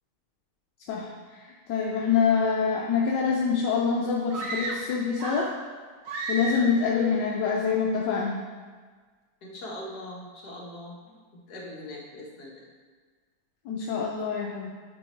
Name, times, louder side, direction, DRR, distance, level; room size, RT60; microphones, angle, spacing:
voice 1, 0.9-5.5 6.3-8.4 13.6-14.7, left 6 dB, 80° left, -2 dB, 1.4 m, -26 dB
sound 1, 4.3-5.7 6.1-6.9, right 2 dB, 55° right, 1.3 m, -33 dB
voice 2, 9.4-11.1 11.5-12.7, left 1 dB, 65° left, -4 dB, 2.1 m, -41 dB
11.0 x 4.5 x 4.5 m, 1.5 s
omnidirectional pair, 1.9 m